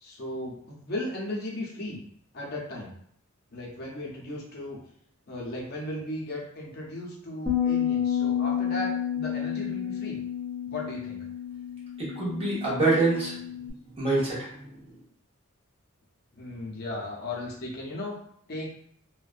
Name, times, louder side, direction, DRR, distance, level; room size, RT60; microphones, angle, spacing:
voice 1, 0.0-2.0 2.3-2.9 3.5-4.8 5.3-10.2 10.7-11.3 16.3-18.2 18.5-18.7, left 1 dB, 45° left, -3 dB, 0.5 m, -36 dB
Bass guitar, 7.5-13.7, left 9 dB, ahead, 0.5 m, -30 dB
voice 2, 12.0-13.3 14.0-14.7, right 3 dB, 25° right, -7 dB, 0.9 m, -25 dB
2.5 x 2.1 x 2.4 m, 0.69 s
head